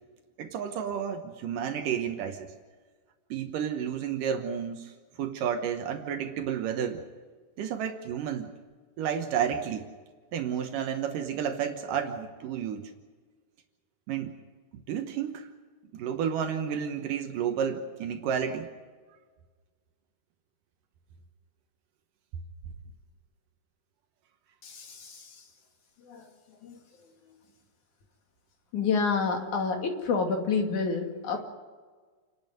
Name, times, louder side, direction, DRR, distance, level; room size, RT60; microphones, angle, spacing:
voice 1, 0.4-2.5 3.3-4.9 5.2-7.0 7.6-8.5 9.0-9.9 10.3-12.9 14.1-14.3 14.7-15.5 15.9-18.7, right 8 dB, 80° right, 5 dB, 2.8 m, -31 dB
voice 2, 24.6-25.5 26.0-27.1 28.7-31.4, left 5 dB, 65° left, 2 dB, 3.8 m, -30 dB
28.5 x 12.0 x 9.3 m, 1.4 s
omnidirectional pair, 3.8 m